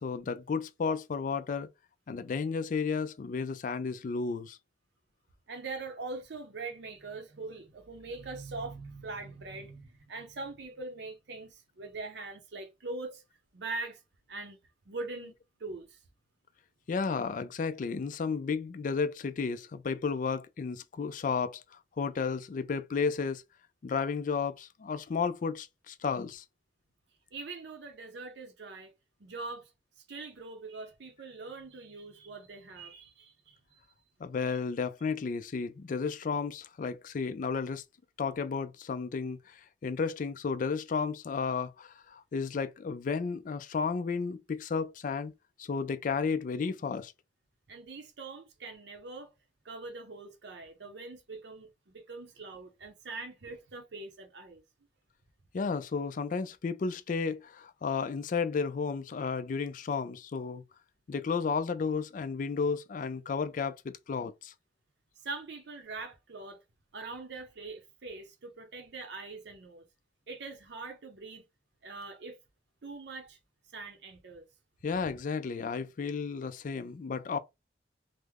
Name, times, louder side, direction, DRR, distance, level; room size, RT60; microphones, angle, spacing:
voice 1, 0.0-1.7 2.1-4.6 16.9-23.4 23.8-26.4 34.2-37.8 38.2-45.3 45.6-47.1 55.5-60.6 61.1-64.5 74.8-77.4, left 5 dB, 45° left, 0.3 m, -33 dB
voice 2, 5.5-13.2 13.5-14.0 14.3-14.6 14.9-15.3 15.6-16.0 27.3-28.9 29.2-29.7 30.1-33.8 47.7-49.3 49.6-54.6 65.2-66.6 66.9-69.8 70.3-71.4 71.8-72.4 72.8-73.4 73.7-74.4, right 3 dB, 65° right, 0.6 m, -42 dB
3.1 x 2.0 x 3.5 m
head